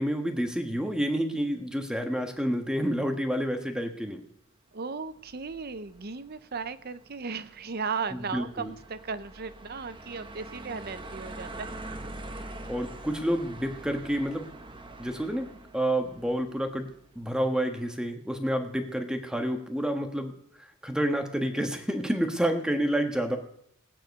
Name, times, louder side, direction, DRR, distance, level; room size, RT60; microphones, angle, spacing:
voice 1, 0.0-4.2 8.1-8.7 12.7-14.5 15.0-15.5 15.7-16.9 17.1-20.3 20.8-23.4, equal, 5° right, 4 dB, 1.3 m, -29 dB
voice 2, 4.7-11.8, right 5 dB, 50° right, 13 dB, 0.7 m, -36 dB
sound 1, 5.1-17.3, right 2 dB, 25° right, 1.0 m, -44 dB
18.5 x 9.1 x 5.3 m, 0.75 s
head